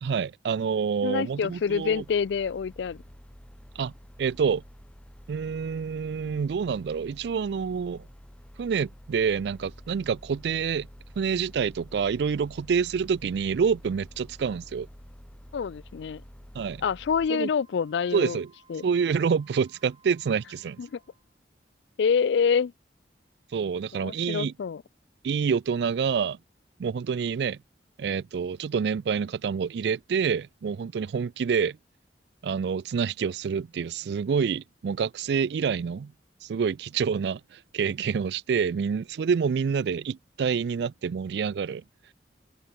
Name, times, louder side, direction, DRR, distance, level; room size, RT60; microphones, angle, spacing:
voice 1, 0.0-2.0 3.8-3.9 4.2-4.6 5.3-8.1 8.6-10.9 11.2-14.9 16.5-16.8 17.3-17.5 18.1-18.5 18.8-20.8 23.5-24.5 25.2-26.4 26.8-27.6 28.0-31.8 32.4-36.1 36.4-41.8, right 6 dB, 70° right, 0.3 m, -27 dB
voice 2, 1.0-3.0 15.5-16.2 16.8-18.4 18.7-18.8 20.8-21.0 22.0-22.7 23.9-24.8, left 6 dB, 80° left, 0.4 m, -26 dB
sound 1, 1.2-17.3, equal, 5° left, 2.2 m, -49 dB
Wind instrument woodwind instrument, 17.2-21.4, right 4 dB, 25° right, 7.1 m, -60 dB
head